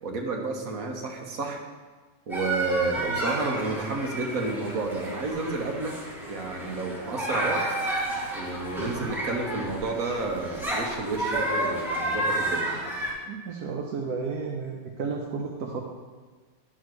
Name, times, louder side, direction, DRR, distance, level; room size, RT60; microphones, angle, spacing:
voice 1, 0.0-1.6 2.3-5.9 6.2-7.6 8.4-12.7, right 3 dB, 65° right, 1 dB, 1.6 m, -30 dB
sound 1, 2.3-13.1, right 1 dB, ahead, 2.3 m, -31 dB
voice 2, 3.0-3.3 8.8-9.1 13.3-15.8, right 5 dB, 80° right, 0 dB, 1.3 m, -33 dB
10.5 x 4.4 x 6.3 m, 1.4 s
omnidirectional pair, 1.6 m